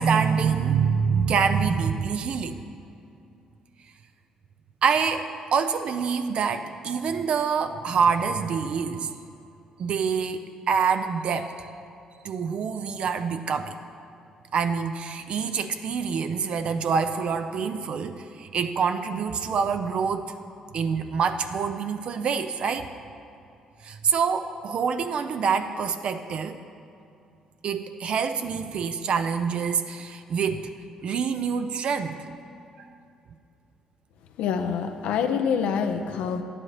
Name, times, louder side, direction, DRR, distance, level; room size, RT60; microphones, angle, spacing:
voice 1, 0.0-2.6 4.8-9.1 9.8-11.7 12.2-13.8 14.5-20.3 20.7-22.9 23.8-26.6 27.6-30.7 31.0-32.3, right 6 dB, 60° right, 8 dB, 0.4 m, -26 dB
voice 2, 34.4-36.4, left 7 dB, 85° left, 6 dB, 0.5 m, -26 dB
10.5 x 9.9 x 3.3 m, 2.6 s
cardioid pair, 95°, 2 cm